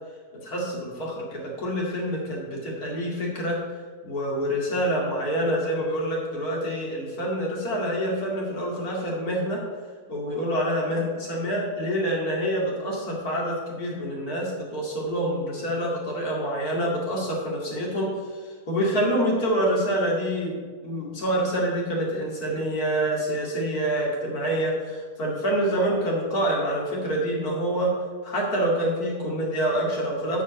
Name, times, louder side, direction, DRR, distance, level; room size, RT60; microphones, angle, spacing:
voice 1, 0.4-3.6 4.0-9.6 10.1-28.0 28.2-30.4, right 1 dB, 70° left, -3 dB, 3.0 m, -26 dB
9.4 x 5.1 x 8.0 m, 1.5 s
omnidirectional pair, 1.6 m